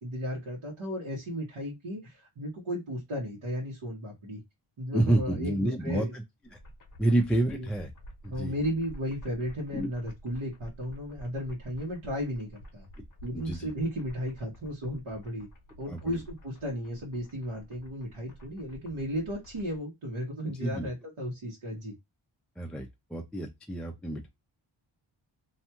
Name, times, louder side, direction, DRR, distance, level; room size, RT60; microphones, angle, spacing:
voice 1, 0.0-4.4 4.8-6.1 7.5-7.7 8.3-12.9 13.2-15.5 15.8-21.9, equal, 75° right, 1.2 m, -35 dB
voice 2, 4.9-6.2 6.5-6.6 7.0-7.9 8.2-8.5 9.7-9.9 13.3-13.7 15.9-16.2 20.4-20.9 22.6-24.3, right 1 dB, ahead, 0.3 m, -29 dB
sound 1, 6.4-19.8, equal, 40° left, 0.8 m, -50 dB
2.6 x 2.2 x 2.8 m
wide cardioid pair, 125°, 49 cm